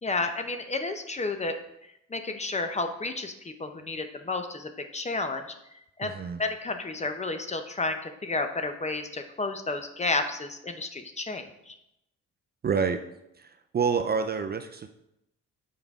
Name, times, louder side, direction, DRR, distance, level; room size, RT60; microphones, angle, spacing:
voice 1, 0.0-1.6 2.1-5.5 6.0-11.7, left 3 dB, 25° left, 7 dB, 0.7 m, -31 dB
voice 2, 6.0-6.4 12.6-13.0 13.4-14.9, right 6 dB, 35° right, 7 dB, 0.5 m, -28 dB
7.2 x 5.1 x 3.6 m, 0.82 s
cardioid pair, 90°, 30 cm